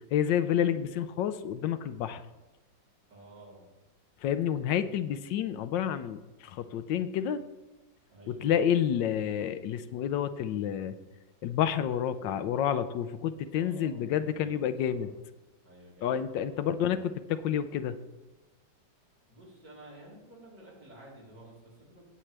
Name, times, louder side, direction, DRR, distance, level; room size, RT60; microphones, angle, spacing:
voice 1, 0.1-2.2 4.2-7.4 8.3-11.0 11.4-15.1 16.0-18.0, left 9 dB, 80° left, 12 dB, 1.3 m, -29 dB
voice 2, 3.1-3.7 8.1-8.5 13.5-15.1 15.6-16.6 19.3-22.0, right 1 dB, 60° right, -6 dB, 4.4 m, -52 dB
18.5 x 7.3 x 3.3 m, 1.1 s
omnidirectional pair, 2.0 m